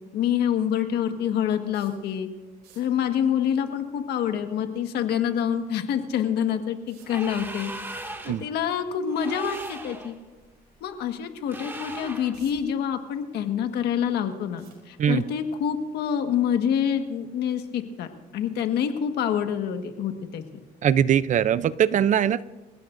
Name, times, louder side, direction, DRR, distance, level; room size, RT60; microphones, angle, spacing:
voice 1, 0.1-2.3 2.7-7.7 8.3-10.1 10.8-20.4, left 8 dB, 75° left, 6 dB, 1.6 m, -26 dB
sound 1, 1.7-2.1 2.5-3.0 5.7-5.8 6.9-7.3 9.5-9.9 10.4-10.6 11.1-11.2 11.9-12.8 13.2-13.9 14.6-15.3 16.2-16.4 16.7-16.8, right 7 dB, 80° right, 6.1 m, -54 dB
sound 2, 7.0-8.5 9.1-10.1 11.5-12.4, right 1 dB, 15° right, 2.1 m, -38 dB
voice 2, 20.8-22.5, right 9 dB, 45° right, 17 dB, 0.5 m, -21 dB
27.5 x 16.5 x 2.6 m, 1.3 s
cardioid pair, 110°, 17 cm